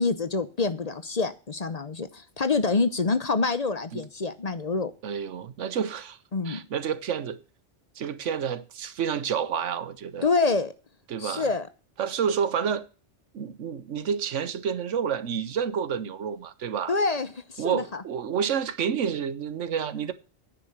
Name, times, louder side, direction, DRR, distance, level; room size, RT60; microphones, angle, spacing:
voice 1, 0.0-4.9 6.3-6.6 10.2-10.7 11.2-11.7 16.9-18.0, left 3 dB, 40° left, 0.8 m, -26 dB
voice 2, 5.0-6.2 6.4-7.4 8.0-10.3 11.1-11.4 12.0-12.9 13.3-16.9 17.6-20.1, right 7 dB, 90° right, 1.2 m, -29 dB
10.0 x 6.3 x 7.7 m
omnidirectional pair, 1.2 m